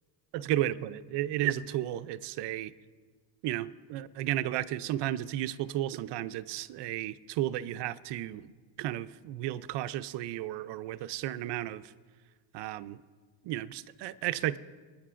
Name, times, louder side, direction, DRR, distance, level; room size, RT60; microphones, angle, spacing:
voice 1, 0.3-2.7 3.4-8.5 8.8-11.9 12.5-13.0 13.4-14.6, right 13 dB, 60° right, 13 dB, 0.6 m, -33 dB
26.5 x 9.9 x 2.5 m, 1.5 s
cardioid pair, 125°, 47 cm